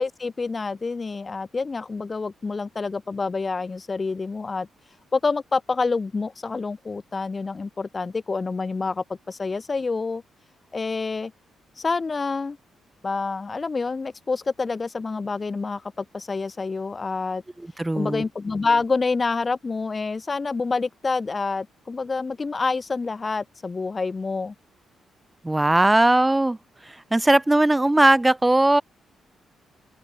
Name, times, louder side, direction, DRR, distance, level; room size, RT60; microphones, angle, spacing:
voice 1, 0.0-4.7 5.1-10.2 10.7-11.3 11.8-12.6 13.0-17.4 18.0-24.5, left 4 dB, 25° left, 0.8 m, -27 dB
voice 2, 17.6-18.2 25.4-28.8, right 1 dB, 10° right, 1.0 m, -19 dB
open air
cardioid pair, 120°, 0 cm